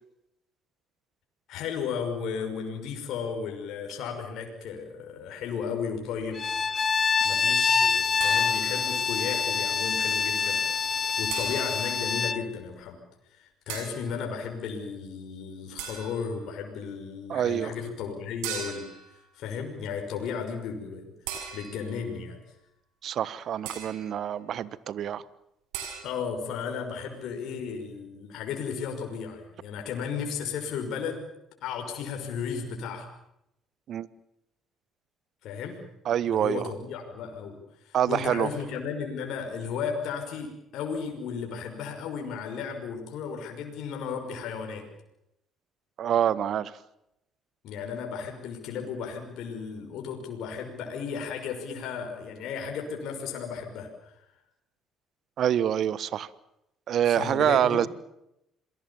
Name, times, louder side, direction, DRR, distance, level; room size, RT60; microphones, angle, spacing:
voice 1, 1.5-6.4 7.2-10.6 10.9-13.0 13.3-18.9 19.3-21.0 21.5-22.4 26.0-31.3 31.6-33.1 35.4-35.8 36.2-44.9 47.6-54.1 57.1-57.9, left 6 dB, 65° left, 2 dB, 5.8 m, -34 dB
Bowed string instrument, 6.3-12.4, left 5 dB, 40° left, 1.2 m, -26 dB
sound 1, 8.2-8.9 11.3-11.9 13.7-14.1 15.8-16.3 18.4-19.1 21.3-22.0 23.7-24.1 25.7-26.0, right 8 dB, 80° right, 6.6 m, -38 dB
voice 2, 17.3-17.7 23.0-25.2 33.9-34.1 36.0-36.7 37.9-38.5 46.0-46.7 55.4-56.3 56.9-57.9, right 10 dB, 60° right, 18 dB, 1.3 m, -26 dB
27.5 x 22.5 x 7.2 m, 0.82 s
hypercardioid pair, 60°, 0 cm